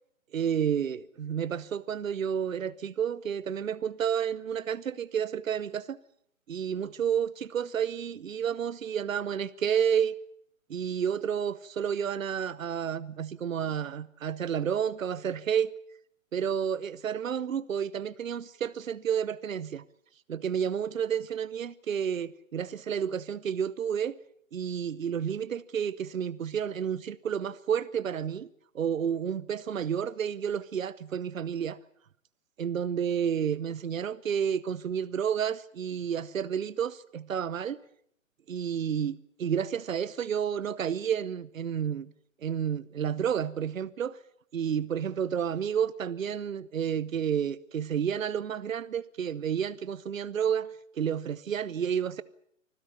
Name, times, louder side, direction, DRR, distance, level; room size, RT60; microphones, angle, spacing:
voice 1, 0.3-6.0 6.5-10.1 10.7-15.7 16.3-19.8 20.3-24.2 24.5-28.5 28.7-31.8 32.6-37.8 38.5-42.1 42.4-44.2 44.5-52.2, right 8 dB, 75° right, 0.9 m, -30 dB
25.5 x 15.5 x 9.3 m
figure-of-eight pair, 130°, 40 cm